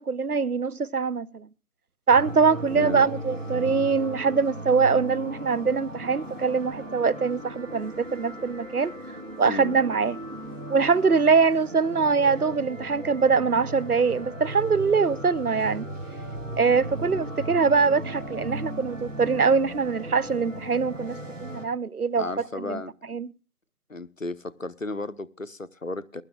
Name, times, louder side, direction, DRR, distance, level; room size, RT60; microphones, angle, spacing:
voice 1, 0.0-1.5 2.1-8.9 9.4-10.2 10.7-15.8 16.6-22.3 22.5-22.8 23.1-23.3, right 5 dB, 85° right, 0.8 m, -23 dB
sound 1, 2.1-21.7, right 1 dB, 60° right, 2.9 m, -37 dB
voice 2, 2.7-3.1 9.4-9.8 22.2-22.9 23.9-26.2, left 2 dB, 60° left, 0.8 m, -34 dB
22.5 x 11.5 x 2.3 m
figure-of-eight pair, 180°, 43 cm